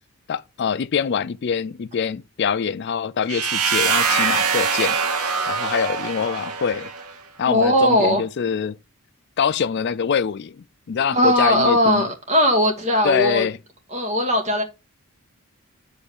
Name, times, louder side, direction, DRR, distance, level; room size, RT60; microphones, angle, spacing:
voice 1, 0.3-5.0 5.5-6.9 7.4-8.8 9.4-10.6 10.9-12.0 13.0-13.6, left 6 dB, 50° left, 0.3 m, -24 dB
sound 1, 3.3-7.1, right 5 dB, 90° right, 1.8 m, -23 dB
voice 2, 7.5-8.2 11.1-13.5 13.9-14.6, equal, 30° right, 2.4 m, -19 dB
7.0 x 5.6 x 6.5 m
head